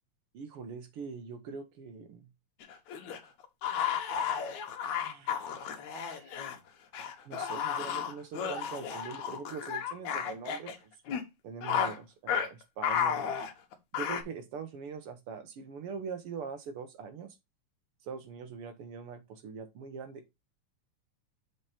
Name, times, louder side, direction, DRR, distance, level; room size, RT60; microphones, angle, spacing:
voice 1, 0.3-2.3 5.0-6.5 7.2-11.0 11.4-13.2 13.9-17.4 18.0-20.3, right 5 dB, 65° right, 1.5 m, -43 dB
sound 1, 2.6-6.6 6.9-10.8 11.1-11.2 11.6-12.0 12.3-12.5 12.8-14.2, left 8 dB, 75° left, 2.4 m, -33 dB
6.6 x 4.9 x 4.3 m
omnidirectional pair, 3.4 m